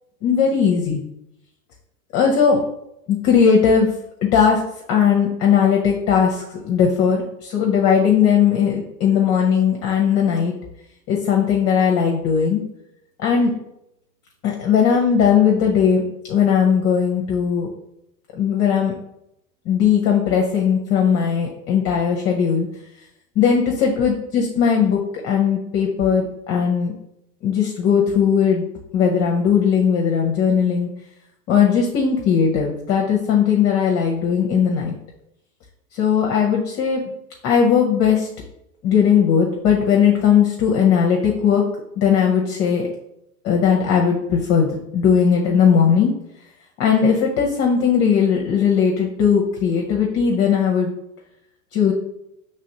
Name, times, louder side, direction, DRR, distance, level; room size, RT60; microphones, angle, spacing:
voice 1, 0.2-1.0 2.1-2.6 3.1-3.9 4.2-4.6 4.9-10.5 11.1-12.6 13.2-13.5 14.4-16.0 16.3-17.7 18.3-18.9 19.7-22.7 23.4-26.9 27.4-28.7 28.9-30.9 31.5-34.9 35.9-37.0 37.4-38.3 38.8-41.6 42.0-42.9 43.4-46.1 46.8-50.9 51.7-51.9, left 7 dB, 35° left, 0 dB, 0.7 m, -18 dB
5.1 x 3.2 x 2.9 m, 0.82 s
hypercardioid pair, 105°, 45 cm